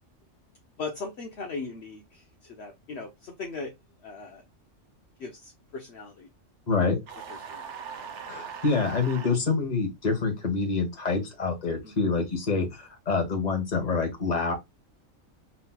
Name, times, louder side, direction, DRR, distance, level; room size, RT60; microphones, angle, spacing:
voice 1, 0.8-3.7 4.0-4.4 5.2-6.3 7.5-7.6 7.9-8.1 11.8-11.9, left 4 dB, 60° left, 1.0 m, -38 dB
sound 1, 7.1-9.4, right 6 dB, 65° right, 1.1 m, -40 dB
voice 2, 8.3-14.5, left 4 dB, 35° left, 1.3 m, -26 dB
5.7 x 2.8 x 2.2 m
omnidirectional pair, 1.3 m